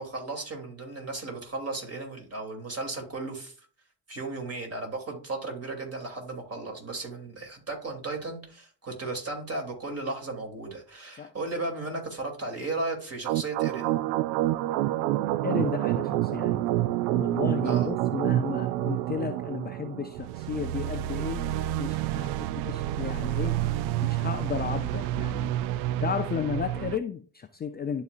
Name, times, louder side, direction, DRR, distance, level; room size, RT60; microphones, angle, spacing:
voice 1, 0.0-3.5 4.1-14.0 17.6-17.9 22.1-22.4, right 2 dB, 30° right, 1 dB, 3.0 m, -35 dB
sound 1, 13.2-27.0, right 14 dB, 65° right, 0.5 m, -28 dB
voice 2, 15.4-16.7 17.1-21.4 21.8-22.3 22.7-23.6 24.0-25.5 26.0-28.0, left 7 dB, 20° left, 8 dB, 0.5 m, -33 dB
11.5 x 4.1 x 2.5 m, 0.44 s
hypercardioid pair, 65°, 48 cm